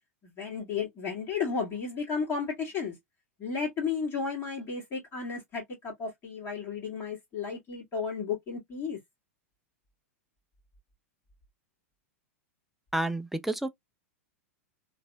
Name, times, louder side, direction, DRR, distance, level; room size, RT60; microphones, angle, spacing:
voice 1, 0.2-3.0 3.4-9.0, left 5 dB, 30° left, 2.0 m, -33 dB
voice 2, 12.9-13.7, right 1 dB, ahead, 0.5 m, -30 dB
3.9 x 2.7 x 2.2 m
hypercardioid pair, 100°, 8 cm